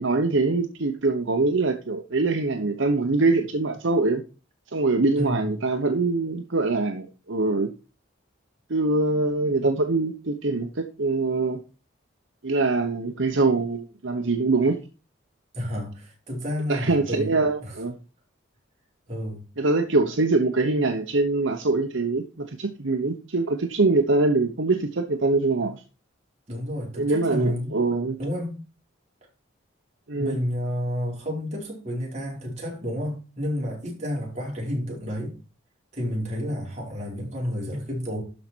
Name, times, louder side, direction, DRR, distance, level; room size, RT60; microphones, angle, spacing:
voice 1, 0.0-4.2 4.7-7.7 8.7-11.6 12.4-14.8 16.7-17.9 19.6-25.8 27.0-28.2 30.1-30.4, right 3 dB, 70° right, 0.9 m, -23 dB
voice 2, 5.1-5.5 15.5-17.3 17.6-17.8 19.1-19.5 26.5-27.8 28.2-28.6 30.1-35.3 35.9-38.2, equal, 35° right, 4.8 m, -30 dB
12.5 x 5.3 x 4.5 m
head